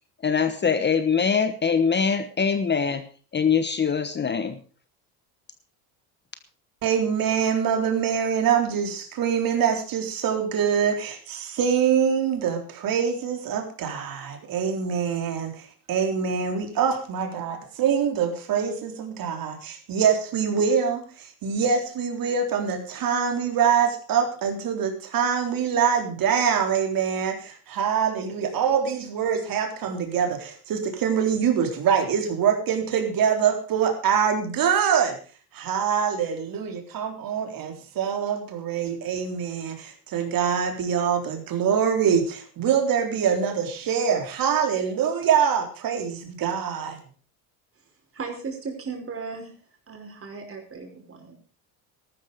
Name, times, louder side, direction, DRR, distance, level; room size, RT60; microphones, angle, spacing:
voice 1, 0.2-3.0 3.3-4.6, left 6 dB, 25° left, 10 dB, 1.2 m, -23 dB
voice 2, 6.8-35.2 35.5-47.0, right 7 dB, 50° right, 5 dB, 3.9 m, -24 dB
voice 3, 48.1-49.5 49.9-51.3, right 4 dB, 30° right, 3 dB, 5.3 m, -36 dB
14.0 x 12.5 x 5.1 m, 0.40 s
cardioid pair, 120°, 43 cm